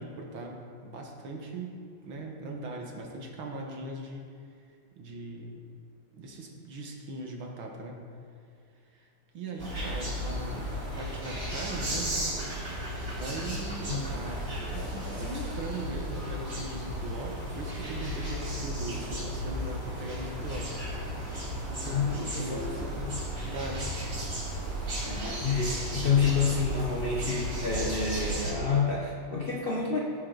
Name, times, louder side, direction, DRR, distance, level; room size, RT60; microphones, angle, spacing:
voice 1, 0.0-4.3 5.0-5.6 6.1-8.0 8.9-9.1 9.3-12.2 13.1-20.8 21.7-23.1 23.4-23.9, right 2 dB, 80° right, 1 dB, 2.3 m, -39 dB
sound 1, 9.6-28.5, equal, 50° right, 4.1 m, -34 dB
voice 2, 21.8-22.7 23.0-23.2 25.0-30.0, left 5 dB, 35° left, -2 dB, 1.0 m, -29 dB
16.0 x 10.0 x 4.0 m, 2.3 s
omnidirectional pair, 2.2 m